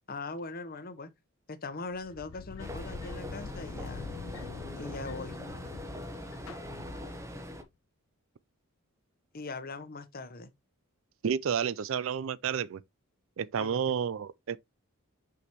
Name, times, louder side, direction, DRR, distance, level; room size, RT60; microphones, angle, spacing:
voice 1, 0.1-1.1 1.5-4.1 4.8-5.4 9.3-10.5 13.6-14.0, left 3 dB, 40° left, 0.9 m, -40 dB
sound 1, 1.9-7.5, left 5 dB, 65° left, 0.4 m, -45 dB
sound 2, 2.6-7.6, equal, 15° right, 0.9 m, -41 dB
voice 2, 11.2-12.8 13.4-14.6, right 7 dB, 60° right, 0.4 m, -30 dB
6.0 x 6.0 x 2.9 m
head